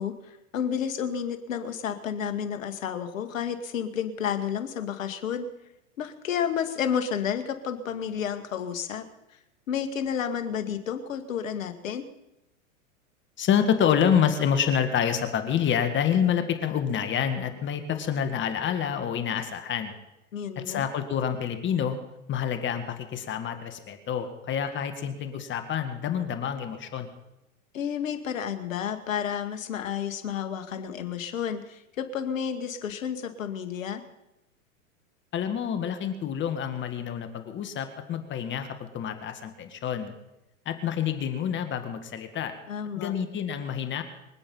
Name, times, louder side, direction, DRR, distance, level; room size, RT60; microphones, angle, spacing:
voice 1, 0.0-5.5 6.0-9.0 9.7-12.0 20.3-20.9 27.7-34.0 42.7-43.1, left 8 dB, 75° left, 9 dB, 2.1 m, -31 dB
voice 2, 13.4-20.0 20.6-22.0 22.3-27.1 35.3-40.2 40.7-42.5 43.0-44.0, left 8 dB, 30° left, 8 dB, 1.9 m, -27 dB
24.5 x 8.4 x 5.6 m, 0.90 s
hypercardioid pair, 110°, 40 cm